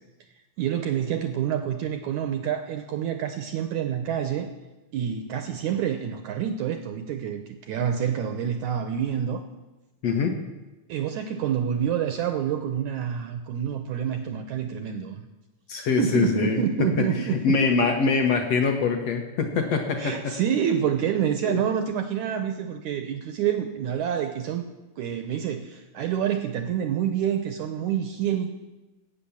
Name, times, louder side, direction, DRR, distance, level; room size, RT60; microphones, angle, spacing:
voice 1, 0.6-4.5 4.9-9.5 10.9-15.3 16.0-17.6 20.0-24.7 25.0-28.5, right 9 dB, 80° right, 8 dB, 1.7 m, -27 dB
voice 2, 10.0-10.3 15.7-17.1 17.3-20.3 21.4-21.6, left 5 dB, 65° left, 4 dB, 1.6 m, -24 dB
17.0 x 8.6 x 7.1 m, 1.1 s
omnidirectional pair, 4.3 m